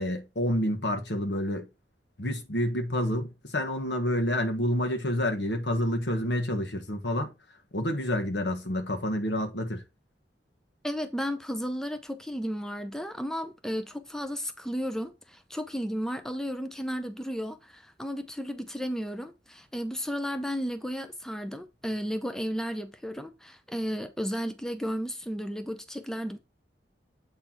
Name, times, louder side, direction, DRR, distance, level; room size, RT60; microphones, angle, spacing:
voice 1, 0.0-1.7 2.2-7.3 7.7-9.8, left 1 dB, 75° left, 1.4 m, -28 dB
voice 2, 10.8-26.4, equal, 5° left, 0.6 m, -33 dB
8.1 x 3.9 x 4.4 m
head